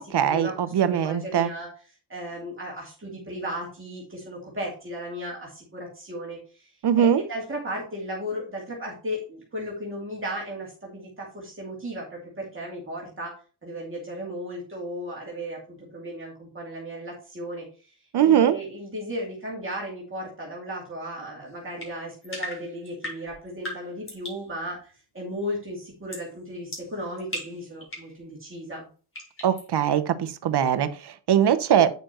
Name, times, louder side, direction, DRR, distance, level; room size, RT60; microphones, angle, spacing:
voice 1, 0.0-1.5 6.8-7.2 18.1-18.6 29.4-31.9, right 9 dB, 65° right, 10 dB, 0.8 m, -21 dB
voice 2, 0.8-1.7 2.1-13.3 13.6-17.9 18.2-28.9, equal, 30° right, -3 dB, 2.6 m, -35 dB
sound 1, 21.8-24.5 26.1-26.3 26.7-28.2 29.1-29.7, equal, 30° left, 4.9 m, -38 dB
9.2 x 6.7 x 3.0 m, 0.37 s
wide cardioid pair, 145°, 42 cm